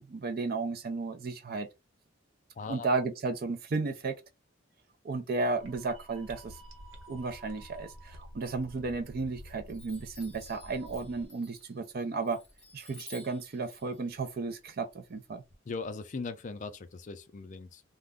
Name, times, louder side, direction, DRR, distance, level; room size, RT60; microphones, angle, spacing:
voice 1, 0.0-1.7 2.7-4.1 5.0-6.6 7.1-12.4 12.7-15.4, right 3 dB, 50° right, 0.5 m, -33 dB
voice 2, 2.6-2.9 15.6-17.8, left 4 dB, 40° left, 0.4 m, -39 dB
sound 1, 5.5-11.3, equal, 80° right, 0.8 m, -50 dB
Chime, 8.8-9.3 9.7-15.5, left 2 dB, 5° left, 0.8 m, -54 dB
2.4 x 2.1 x 3.5 m
head